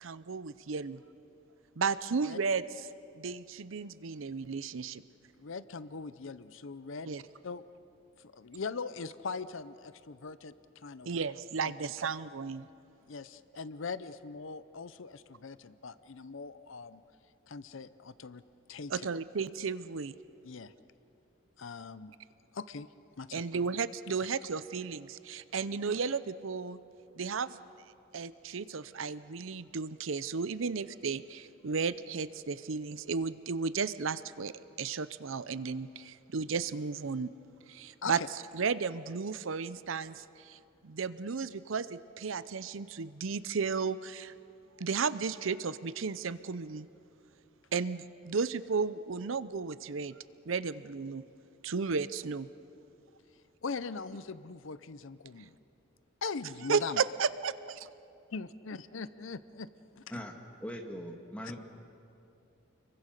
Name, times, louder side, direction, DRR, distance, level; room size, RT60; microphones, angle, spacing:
voice 1, 0.0-1.0 1.8-2.6 3.2-5.0 7.1-7.2 11.1-12.7 18.9-20.1 23.3-26.8 27.2-27.6 28.1-37.3 37.7-38.2 38.5-44.3 44.8-46.9 47.7-50.2 50.5-51.2 51.6-52.5 56.7-57.9, right 5 dB, 70° right, 15 dB, 0.6 m, -34 dB
voice 2, 5.4-7.1 7.4-7.6 8.2-11.1 11.6-11.7 13.1-17.0 17.5-18.4 18.7-19.1 20.4-20.7 21.6-22.1 22.5-22.9 23.2-23.5 38.0-38.3 53.6-55.6 56.2-57.0 58.3-60.2, left 4 dB, 70° left, 14 dB, 0.7 m, -41 dB
voice 3, 60.6-61.6, equal, 5° left, 2 dB, 2.0 m, -40 dB
29.5 x 23.0 x 6.7 m, 2.7 s
head